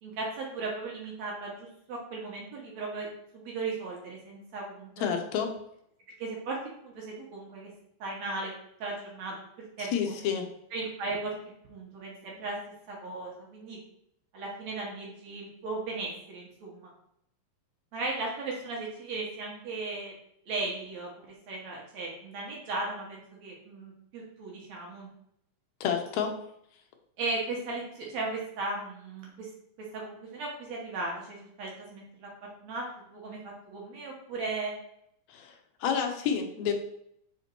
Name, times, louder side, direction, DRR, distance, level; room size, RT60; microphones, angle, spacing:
voice 1, 0.0-3.1 3.3-5.1 6.2-6.6 6.8-7.7 8.0-8.5 8.8-9.4 9.8-9.9 10.7-11.3 11.7-12.6 12.9-13.8 14.3-16.9 17.9-20.1 20.5-25.1 27.2-29.5 29.9-34.7, right 3 dB, 65° right, -2 dB, 2.1 m, -36 dB
voice 2, 5.0-5.5 9.8-10.5 25.8-26.3 35.3-36.7, left 7 dB, 70° left, 4 dB, 1.8 m, -29 dB
5.1 x 4.3 x 4.4 m, 0.72 s
omnidirectional pair, 3.8 m